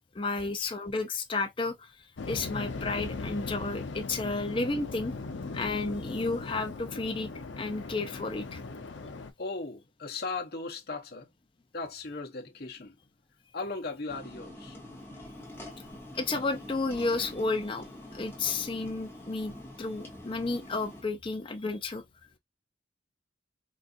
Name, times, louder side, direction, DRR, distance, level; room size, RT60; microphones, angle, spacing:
voice 1, 0.1-1.9 2.3-5.1 5.5-7.3 7.6-8.6 16.1-17.9 18.1-22.0, left 3 dB, 25° left, 0.5 m, -32 dB
Waves surf, 2.2-9.3, left 3 dB, 75° left, 0.6 m, -39 dB
voice 2, 9.4-11.3 11.7-13.0 13.5-14.8, left 3 dB, 55° left, 0.9 m, -37 dB
sound 1, 14.1-21.0, left 1 dB, 10° left, 0.9 m, -45 dB
3.9 x 2.4 x 2.5 m
head